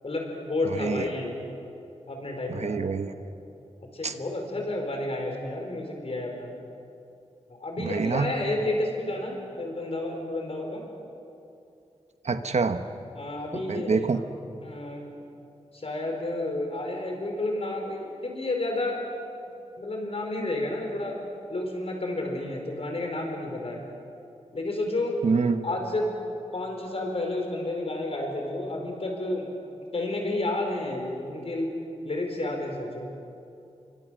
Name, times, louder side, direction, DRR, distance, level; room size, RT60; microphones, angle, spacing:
voice 1, 0.0-1.4 2.1-2.8 3.8-6.5 7.5-10.8 13.2-14.1 14.6-15.1 15.7-19.1 19.8-21.2 21.5-23.8 24.5-25.2 25.6-26.1 26.5-29.5 29.9-31.7 32.0-33.1, left 2 dB, 55° left, 2 dB, 4.7 m, -31 dB
voice 2, 2.5-3.1 4.0-4.1 7.8-8.3 12.2-12.8 13.5-14.2 25.2-25.6, right 4 dB, 70° right, 9 dB, 1.2 m, -26 dB
28.0 x 24.0 x 6.5 m, 2.7 s
wide cardioid pair, 110°, 12 cm